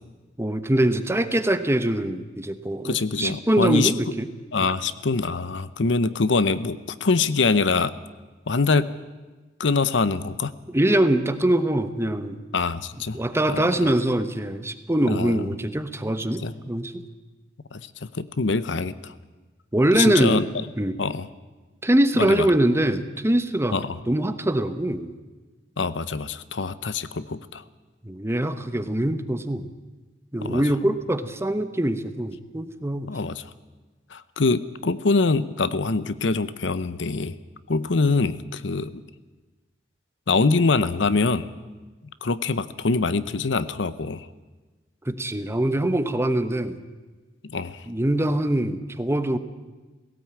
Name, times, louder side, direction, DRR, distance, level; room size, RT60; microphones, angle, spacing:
voice 1, 0.4-4.3 10.7-12.4 13.1-17.0 19.7-20.5 20.8-21.0 21.8-23.8 24.1-25.1 28.0-29.7 30.3-33.1 45.1-46.8 47.9-49.4, right 1 dB, 15° right, 10 dB, 1.0 m, -23 dB
voice 2, 2.8-3.9 4.5-7.9 8.5-8.9 9.6-10.5 12.5-13.2 13.5-13.9 15.1-15.5 16.4-16.5 17.7-17.9 18.1-19.1 19.9-20.5 21.0-21.3 22.1-22.5 23.7-24.0 25.8-27.6 30.4-30.6 33.1-33.4 34.1-37.3 37.7-39.0 40.3-41.5 42.2-44.3 47.4-47.8, left 4 dB, 70° left, 15 dB, 0.8 m, -24 dB
17.5 x 17.0 x 8.8 m, 1.2 s
head